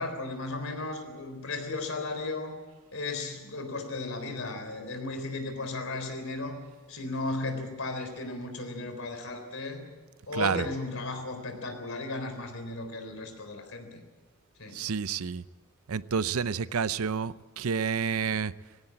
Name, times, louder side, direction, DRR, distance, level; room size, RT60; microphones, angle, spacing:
voice 1, 0.0-2.6 2.9-6.6 6.9-9.9 10.3-14.0 14.6-14.8, left 2 dB, 65° left, 6 dB, 3.9 m, -35 dB
voice 2, 10.3-10.7 14.7-15.4 15.9-18.5, right 6 dB, 75° right, 16 dB, 0.6 m, -29 dB
19.0 x 17.0 x 8.6 m, 1.3 s
head